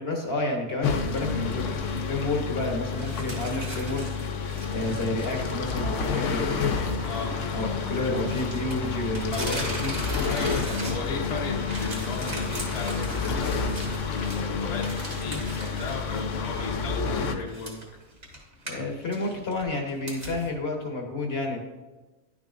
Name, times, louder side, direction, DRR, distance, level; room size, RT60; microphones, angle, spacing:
voice 1, 0.0-4.4 4.7-6.7 7.5-9.9 18.6-21.6, left 2 dB, 50° left, 2 dB, 1.2 m, -30 dB
sound 1, 0.8-17.3, left 5 dB, 70° left, 1.0 m, -29 dB
sound 2, 2.9-5.6 6.0-6.1 8.3-11.3 11.5-16.3 16.6-16.7 17.5-20.5, right 1 dB, 50° right, 2.0 m, -39 dB
sound 3, 5.1-15.4, right 1 dB, 85° right, 2.4 m, -46 dB
voice 2, 7.0-7.4 9.3-9.8 10.2-17.7, left 3 dB, 35° left, -1 dB, 0.9 m, -35 dB
10.5 x 6.1 x 2.5 m, 1.2 s
omnidirectional pair, 1.4 m